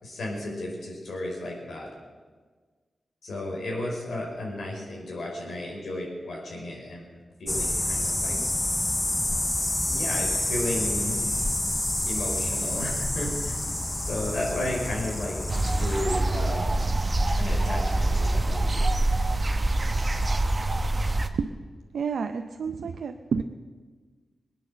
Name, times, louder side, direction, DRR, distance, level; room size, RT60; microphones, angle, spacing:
voice 1, 0.0-1.9 3.2-8.3 9.8-11.2 12.1-13.6 13.9-15.4 15.6-16.7 17.4-18.9, left 1 dB, 80° left, -2 dB, 4.8 m, -33 dB
sound 1, 7.5-16.1, left 1 dB, 15° left, 0.4 m, -28 dB
sound 2, 15.5-21.3, right 2 dB, 35° right, 1.1 m, -25 dB
voice 2, 21.9-23.4, right 6 dB, 85° right, 7 dB, 0.6 m, -29 dB
20.5 x 9.0 x 7.4 m, 1.5 s
cardioid pair, 70°, 0 cm